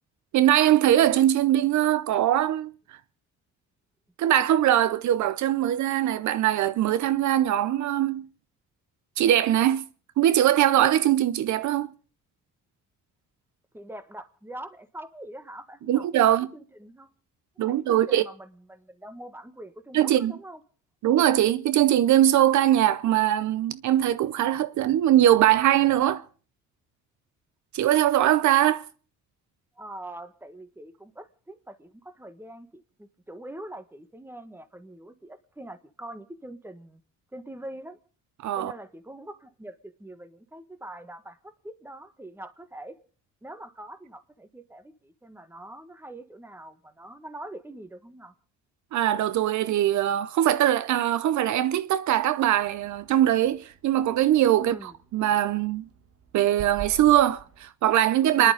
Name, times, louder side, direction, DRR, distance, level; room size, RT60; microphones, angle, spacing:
voice 1, 0.3-3.0 4.2-8.3 9.2-9.9 10.2-11.9 15.9-16.5 17.6-18.2 19.9-20.3 21.0-26.2 27.7-28.8 38.4-38.7 48.9-54.7 55.1-55.9 56.3-58.5, right 12 dB, 70° right, 0.6 m, -21 dB
voice 2, 13.7-17.1 17.6-20.6 29.7-37.0 37.3-38.0 38.5-42.9 43.4-48.3 54.6-54.9 58.3-58.5, right 1 dB, 5° right, 1.5 m, -43 dB
sound 1, 52.5-57.7, right 9 dB, 50° right, 1.4 m, -46 dB
29.5 x 11.0 x 4.0 m
cardioid pair, 90°, 30 cm